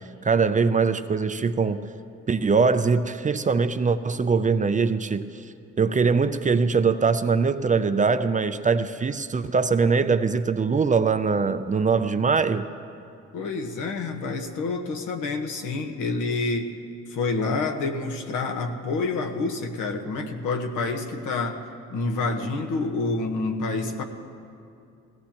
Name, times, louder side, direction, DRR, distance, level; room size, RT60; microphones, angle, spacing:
voice 1, 0.2-1.9 2.3-5.4 5.8-12.7, right 5 dB, 25° right, 10 dB, 0.5 m, -22 dB
voice 2, 13.3-16.7 17.1-24.0, left 3 dB, 80° left, 4 dB, 1.3 m, -28 dB
19.0 x 16.5 x 3.0 m, 2.6 s
cardioid pair, 90°, 30 cm